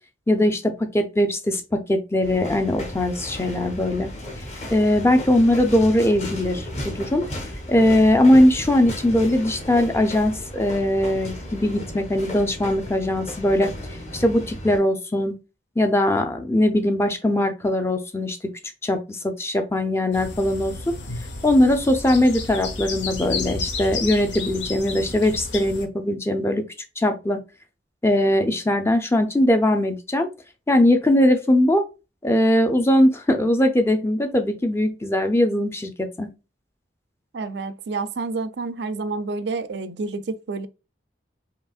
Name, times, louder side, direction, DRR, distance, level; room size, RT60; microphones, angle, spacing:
voice 1, 0.3-4.1 4.7-7.2 7.7-13.7 14.1-15.3 15.8-18.4 18.8-20.8 21.4-26.7 27.0-27.4 28.0-30.3 30.7-31.8 32.2-36.3, left 1 dB, 15° left, 0.5 m, -20 dB
sound 1, 2.2-14.8, left 1 dB, 35° left, 1.2 m, -34 dB
sound 2, 20.1-25.9, left 3 dB, 80° left, 1.0 m, -32 dB
voice 2, 37.3-40.7, right 3 dB, 65° right, 0.5 m, -29 dB
5.1 x 2.8 x 2.4 m
head